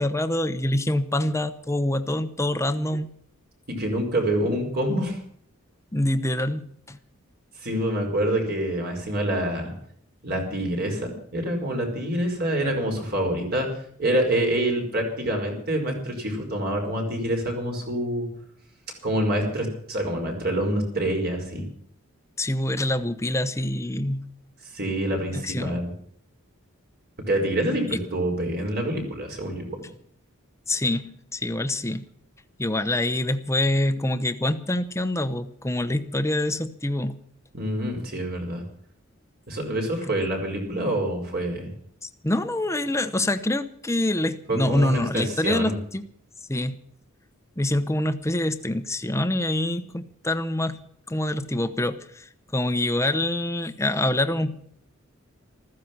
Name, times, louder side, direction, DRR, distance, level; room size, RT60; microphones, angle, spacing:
voice 1, 0.0-3.1 5.9-7.0 22.4-24.3 25.3-25.8 27.9-28.0 30.7-32.1 32.6-37.2 42.0-46.0 46.5-46.7 47.6-50.8 51.1-52.3 52.5-54.6, left 1 dB, 15° left, 11 dB, 1.0 m, -25 dB
voice 2, 3.7-5.2 7.6-9.7 10.2-13.7 14.0-18.3 19.0-21.6 24.7-25.9 27.3-29.8 37.5-38.6 39.5-41.7 44.5-45.8, right 1 dB, 50° right, 2 dB, 5.1 m, -26 dB
15.0 x 14.5 x 6.0 m, 0.64 s
head